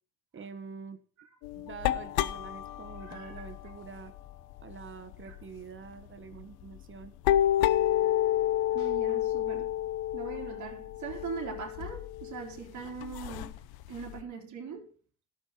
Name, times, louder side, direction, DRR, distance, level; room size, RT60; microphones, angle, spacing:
voice 1, 0.3-1.0 1.5-4.1 4.6-7.1, right 6 dB, 35° right, 1.5 m, -45 dB
sound 1, 1.4-5.4 5.9-6.1 6.3-14.2, left 12 dB, 80° left, 0.8 m, -30 dB
voice 2, 3.1-3.5 5.2-5.3 8.7-9.7 10.1-13.5 13.9-14.9, right 5 dB, 50° right, 3.4 m, -41 dB
16.5 x 6.4 x 4.1 m
cardioid pair, 100°, 36 cm